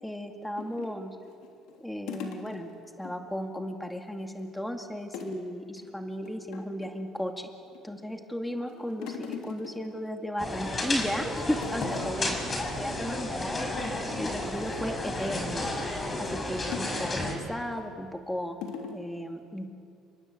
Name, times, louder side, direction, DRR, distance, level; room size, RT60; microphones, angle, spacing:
voice 1, 0.0-1.2 1.8-2.7 3.0-7.5 7.8-13.6 14.2-15.7 16.2-18.6 18.9-19.7, equal, 5° left, 4 dB, 2.3 m, -35 dB
sound 1, 0.6-3.1 3.5-3.6 3.9-4.6 5.1-5.5 5.8-5.9 6.2-7.1 7.6-8.1 8.5-10.6 11.0-11.3 11.5-12.4 12.7-12.9 13.2-13.4 13.9-15.7 16.7-17.4 18.0-18.1 18.6-19.0, left 7 dB, 75° left, 3.3 m, -42 dB
sound 2, 10.4-17.3, left 1 dB, 25° left, 6.0 m, -32 dB
29.0 x 24.0 x 8.1 m, 2.5 s
supercardioid pair, 85°, 0 cm